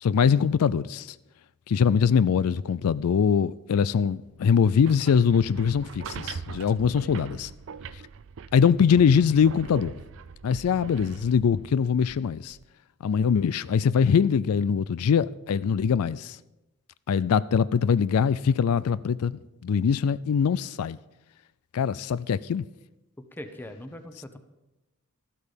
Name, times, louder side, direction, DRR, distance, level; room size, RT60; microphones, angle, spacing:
voice 1, 0.0-1.2 1.7-7.5 8.5-9.9 10.4-12.6 13.0-16.4 17.1-21.0 21.7-22.7, left 7 dB, 85° left, 0.4 m, -23 dB
sound 1, 4.6-12.6, right 6 dB, 60° right, 0.4 m, -41 dB
voice 2, 23.3-24.4, left 1 dB, 10° left, 1.0 m, -41 dB
13.0 x 12.5 x 5.2 m
head